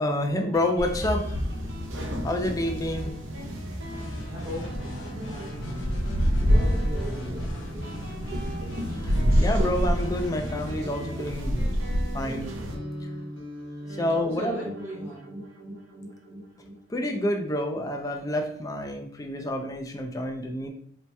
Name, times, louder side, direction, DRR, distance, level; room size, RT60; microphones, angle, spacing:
voice 1, 0.0-1.4 2.2-3.1 9.0-11.7 12.1-12.6 13.9-14.6 16.9-20.7, left 1 dB, 15° left, 4 dB, 0.4 m, -28 dB
Guitar, 0.5-17.7, equal, 85° right, 1.0 m, -39 dB
sound 1, 0.8-12.8, equal, 70° right, 0.6 m, -28 dB
sound 2, 3.9-11.0, equal, 80° left, 0.6 m, -39 dB
voice 2, 4.2-5.7 6.3-8.0 14.1-15.3, equal, 35° right, -8 dB, 1.1 m, -39 dB
4.2 x 2.8 x 2.2 m, 0.63 s
head